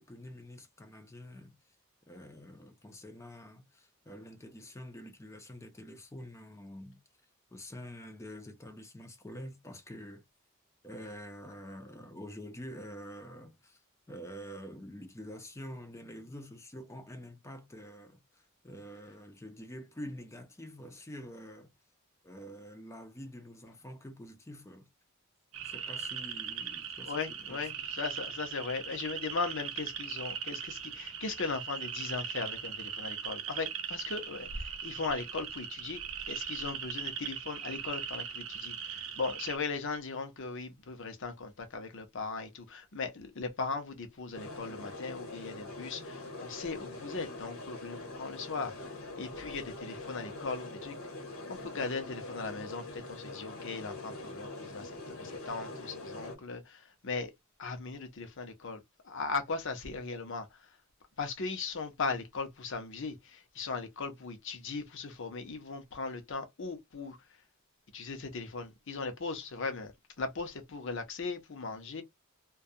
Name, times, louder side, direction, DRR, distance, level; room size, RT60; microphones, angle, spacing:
voice 1, 0.0-1.5 2.1-7.0 7.5-10.2 10.8-13.8 14.1-21.7 22.2-24.9 25.6-27.9, equal, 15° left, 0.5 m, -47 dB
sound 1, 25.5-39.6, right 7 dB, 65° right, 0.6 m, -39 dB
voice 2, 27.1-36.0 36.3-50.9 51.5-57.3 57.6-58.8 59.0-60.5 61.2-67.2 67.9-69.9 70.2-72.0, left 4 dB, 60° left, 0.7 m, -38 dB
sound 2, 44.3-56.4, left 2 dB, 75° left, 1.1 m, -43 dB
2.3 x 2.2 x 2.6 m
head